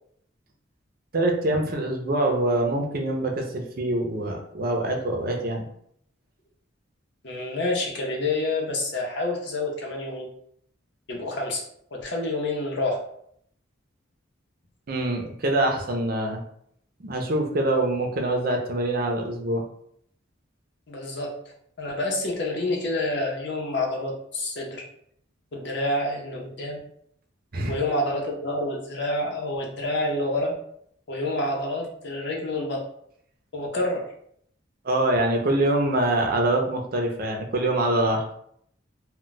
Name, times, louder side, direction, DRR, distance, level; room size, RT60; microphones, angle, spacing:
voice 1, 1.1-5.7 14.9-16.4 17.0-19.6 27.5-27.8 34.8-38.2, right 1 dB, 50° right, 2 dB, 0.5 m, -24 dB
voice 2, 7.2-10.3 11.1-11.6 11.9-13.0 20.9-21.3 21.8-24.8 25.5-26.8 27.7-30.5 31.1-32.8 33.5-34.0, left 2 dB, 60° left, -1 dB, 0.7 m, -28 dB
2.2 x 2.2 x 3.9 m, 0.68 s
head